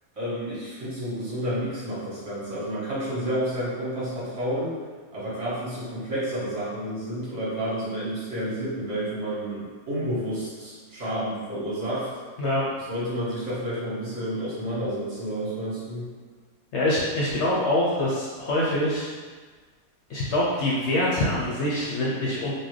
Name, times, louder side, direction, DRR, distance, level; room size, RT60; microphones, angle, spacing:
voice 1, 0.2-4.7 5.1-12.1 12.9-16.1, equal, 65° right, -10 dB, 1.8 m, -30 dB
voice 2, 12.4-12.7 16.7-19.1 20.1-22.5, left 1 dB, 65° left, -5 dB, 0.8 m, -25 dB
4.1 x 2.2 x 3.1 m, 1.4 s
omnidirectional pair, 1.5 m